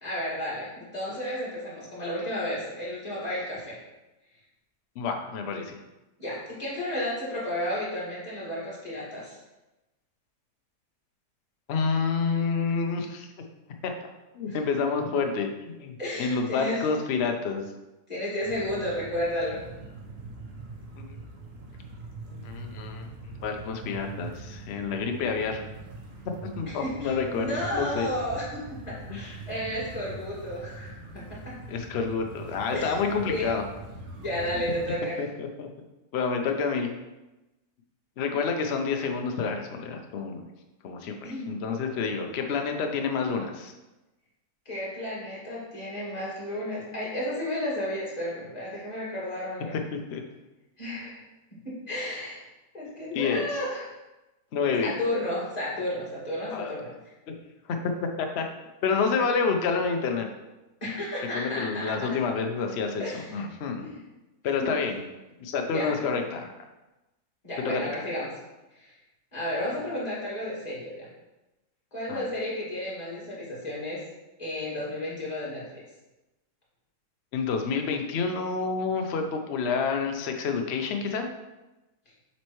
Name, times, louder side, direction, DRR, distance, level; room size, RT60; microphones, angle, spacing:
voice 1, 0.0-3.8 6.2-9.4 14.5-14.6 16.0-16.9 18.1-19.6 26.7-31.6 32.7-32.9 33.3-33.5 34.2-35.2 41.2-41.6 44.7-49.8 50.8-51.2 51.6-52.4 52.7-53.9 54.8-56.9 60.8-61.9 63.0-63.4 63.8-64.0 64.6-64.7 65.7-66.0 67.4-68.3 68.8-69.0 69.3-71.1 71.9-74.0 74.4-75.6, left 1 dB, 25° left, -7 dB, 2.1 m, -32 dB
voice 2, 5.0-5.8 11.7-13.3 13.8-13.9 14.3-17.6 21.0-21.1 22.3-23.1 23.4-25.6 26.6-28.1 29.1-29.2 31.7-33.6 34.5-34.6 35.2-35.7 36.1-36.9 38.2-40.4 40.8-43.7 49.9-50.2 53.1-53.4 54.5-55.0 56.5-56.7 58.2-58.4 58.8-60.3 61.3-63.8 64.4-65.0 65.4-66.5 67.6-67.8 72.1-72.3 77.3-81.3, left 5 dB, 55° left, 4 dB, 0.7 m, -28 dB
sound 1, 18.4-34.8, right 2 dB, 55° right, 1.4 m, -42 dB
7.3 x 4.3 x 3.1 m, 1.0 s
omnidirectional pair, 1.7 m